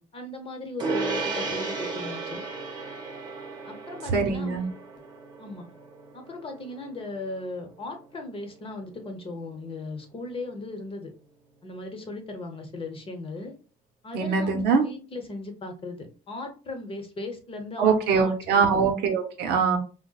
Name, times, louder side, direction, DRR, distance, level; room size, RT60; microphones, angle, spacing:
voice 1, 0.1-2.4 3.7-4.6 5.4-5.7 6.1-11.1 11.6-13.5 14.0-18.8, left 2 dB, 35° left, 4 dB, 0.8 m, -37 dB
Gong, 0.8-10.5, right 3 dB, 25° right, 0.9 m, -36 dB
voice 2, 4.1-4.6 14.1-14.8 17.8-19.8, right 5 dB, 85° right, 4 dB, 0.8 m, -23 dB
3.9 x 2.1 x 2.3 m, 0.36 s
cardioid pair, 110°, 17 cm